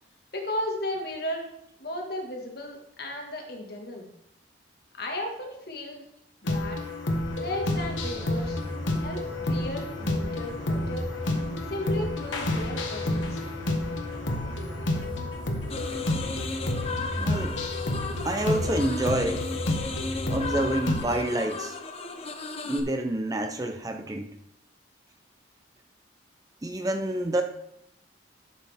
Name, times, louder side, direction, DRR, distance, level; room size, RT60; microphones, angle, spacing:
voice 1, 0.3-1.5 1.8-4.1 5.0-6.0 6.4-6.8 7.4-8.6 9.0-11.1 11.6-13.4, left 1 dB, 50° left, 1 dB, 1.7 m, -35 dB
sound 1, 6.4-21.1, left 2 dB, 75° left, 1.4 m, -30 dB
sound 2, 7.3-21.0, equal, 70° right, 2.9 m, -37 dB
sound 3, 15.7-22.8, left 3 dB, 30° left, 0.8 m, -36 dB
voice 2, 17.2-17.6 18.2-19.5 20.3-21.8 22.7-24.3 26.6-27.4, right 1 dB, 20° right, 6 dB, 0.5 m, -28 dB
11.5 x 6.3 x 3.5 m, 0.78 s
head